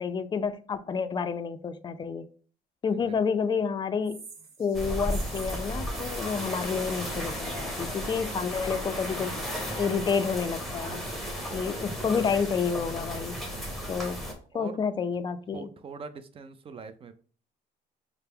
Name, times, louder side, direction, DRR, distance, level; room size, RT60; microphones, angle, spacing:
voice 1, 0.0-2.3 2.8-4.2 4.6-9.3 9.8-11.0 11.5-13.4 13.9-14.2 14.5-15.7, left 6 dB, 25° left, 10 dB, 0.4 m, -29 dB
sound 1, 4.0-7.9, right 5 dB, 70° right, 1.1 m, -48 dB
sound 2, 4.7-14.3, equal, ahead, 1.0 m, -34 dB
voice 2, 8.0-8.5 11.5-11.9 14.5-14.8 15.5-17.1, right 5 dB, 35° right, 11 dB, 0.5 m, -44 dB
5.5 x 2.0 x 3.4 m, 0.41 s
cardioid pair, 110°, 17 cm